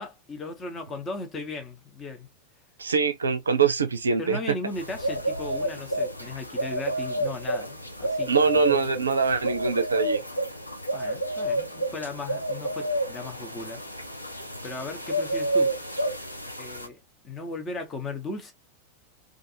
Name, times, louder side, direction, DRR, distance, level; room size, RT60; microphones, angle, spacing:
voice 1, 0.0-2.3 4.2-8.9 10.9-13.8 14.2-15.7 16.6-18.5, left 3 dB, 20° left, 0.8 m, -37 dB
voice 2, 2.8-4.4 8.3-10.2, right 5 dB, 75° right, 0.4 m, -23 dB
sound 1, 4.7-16.9, right 1 dB, 85° left, 0.5 m, -30 dB
2.5 x 2.4 x 2.7 m
figure-of-eight pair, 90°, 0 cm